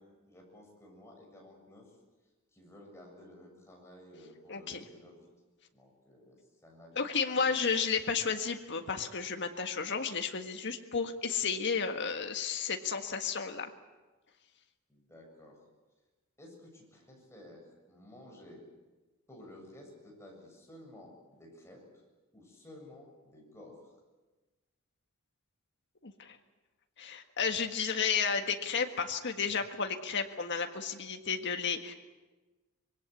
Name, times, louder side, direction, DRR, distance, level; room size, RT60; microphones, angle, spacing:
voice 1, 0.0-2.0 2.5-5.3 5.7-6.4 6.6-7.5 14.9-15.6 16.4-18.6 19.3-21.8 22.3-23.8, left 1 dB, 15° left, 0 dB, 7.6 m, -53 dB
voice 2, 4.5-4.8 6.9-13.7 26.0-26.4 27.0-31.9, left 6 dB, 55° left, 5 dB, 1.6 m, -32 dB
25.5 x 22.0 x 8.5 m, 1.2 s
head